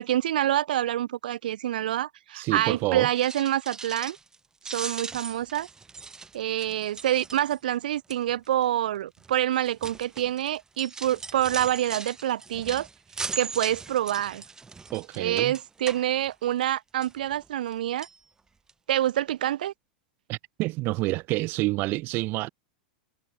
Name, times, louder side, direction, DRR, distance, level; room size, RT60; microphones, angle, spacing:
voice 1, 0.0-4.2 4.7-5.7 6.3-12.9 13.4-14.4 15.2-18.1 18.9-19.7, right 12 dB, 75° right, 0.4 m, -27 dB
voice 2, 2.3-3.1 14.9-15.5 20.3-22.5, right 21 dB, 45° right, 1.3 m, -28 dB
sound 1, 3.0-4.4 4.6-7.8 8.1-8.5 9.2-16.7 17.0-17.7 18.0-18.2 18.7-18.8 19.1-19.2, right 4 dB, 15° right, 1.0 m, -39 dB
hypercardioid pair, 105°, 5 cm